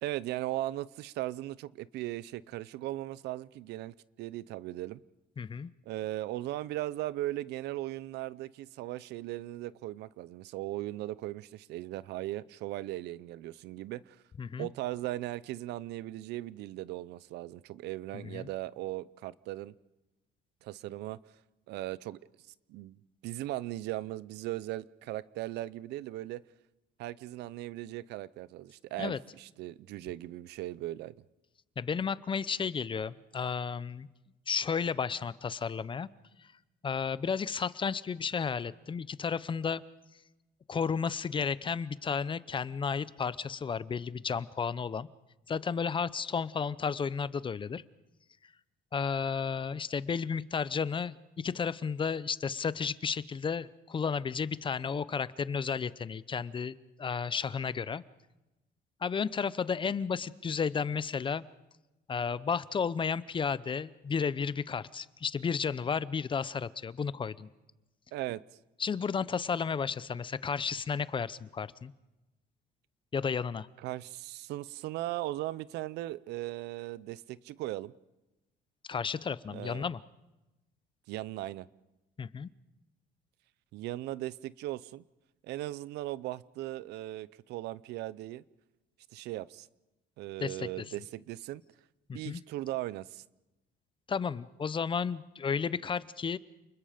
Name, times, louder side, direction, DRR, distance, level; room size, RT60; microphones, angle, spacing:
voice 1, 0.0-5.0 5.9-14.2 14.6-19.7 20.6-21.2 21.7-22.2 22.7-26.4 27.0-31.1 68.1-68.4 73.8-77.9 79.5-79.9 81.1-81.7 83.7-85.0 85.4-88.4 89.1-89.7 90.2-91.6 92.1-93.2, right 16 dB, 80° right, 0.7 m, -38 dB
voice 2, 5.4-5.7 14.4-14.7 18.1-18.5 29.0-29.2 31.8-34.1 34.5-36.1 36.8-39.8 40.7-45.1 45.5-47.8 48.9-58.0 59.0-61.4 62.1-67.5 68.8-71.9 73.1-73.7 78.9-80.0 82.2-82.5 90.4-90.8 92.1-92.4 94.1-96.4, left 6 dB, 30° left, 0.7 m, -33 dB
29.5 x 21.0 x 5.1 m
cardioid pair, 110°, 17 cm